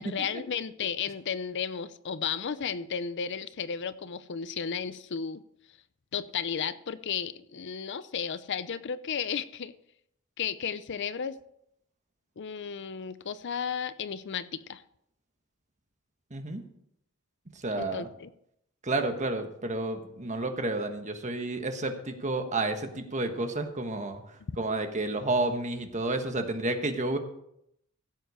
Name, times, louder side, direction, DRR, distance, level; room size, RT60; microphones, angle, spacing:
voice 1, 0.0-5.4 6.1-9.7 10.4-11.4 12.4-14.8 17.8-18.3 24.5-24.6, left 7 dB, 55° left, 14 dB, 0.5 m, -34 dB
voice 2, 16.3-16.6 17.6-18.1 18.8-24.2 24.6-27.2, right 2 dB, 35° right, 6 dB, 1.3 m, -30 dB
16.0 x 7.9 x 4.9 m, 0.76 s
head